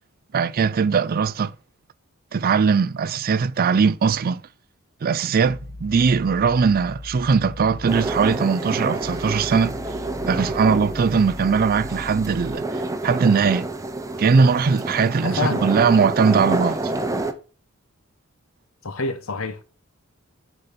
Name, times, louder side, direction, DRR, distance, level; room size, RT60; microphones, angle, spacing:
voice 1, 0.3-1.5 2.3-4.4 5.0-9.7 10.3-13.7 14.2-16.9, right 5 dB, 45° right, 0.4 m, -20 dB
sound 1, 5.5-12.6, left 2 dB, 50° left, 0.7 m, -38 dB
sound 2, 7.9-17.3, right 2 dB, 15° right, 0.7 m, -28 dB
voice 2, 15.2-15.9 18.8-19.6, left 3 dB, 75° left, 0.9 m, -28 dB
6.6 x 4.1 x 5.8 m
head